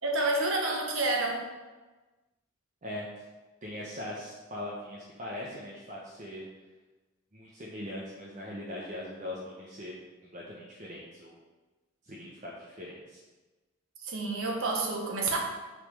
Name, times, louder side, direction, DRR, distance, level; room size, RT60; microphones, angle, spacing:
voice 1, 0.0-1.5 14.0-15.4, right 2 dB, 85° right, 1 dB, 1.4 m, -29 dB
voice 2, 2.8-3.2 3.6-6.5 7.3-9.9 10.2-11.4 12.0-13.2, left 1 dB, 40° right, -5 dB, 1.0 m, -41 dB
6.4 x 4.2 x 6.4 m, 1.2 s
head